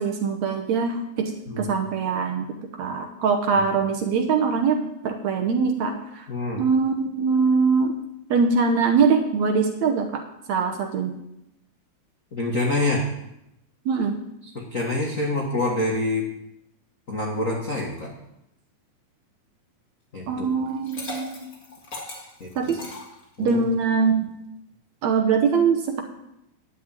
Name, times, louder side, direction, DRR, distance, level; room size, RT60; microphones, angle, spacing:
voice 1, 0.0-1.3 1.6-2.5 2.8-4.8 5.0-6.3 6.6-8.0 8.3-10.2 10.5-11.1 13.9-14.2 20.3-21.5 22.6-22.8 23.4-24.3 25.0-26.0, right 5 dB, 70° right, 4 dB, 1.9 m, -22 dB
voice 2, 6.3-6.6 12.3-13.1 14.5-16.2 17.1-18.1 20.1-20.5 22.4-22.8 23.4-23.6, left 2 dB, 50° left, -2 dB, 0.9 m, -26 dB
Liquid, 20.7-23.7, left 2 dB, 25° left, 2.5 m, -38 dB
11.0 x 6.1 x 8.9 m, 0.84 s
omnidirectional pair, 3.9 m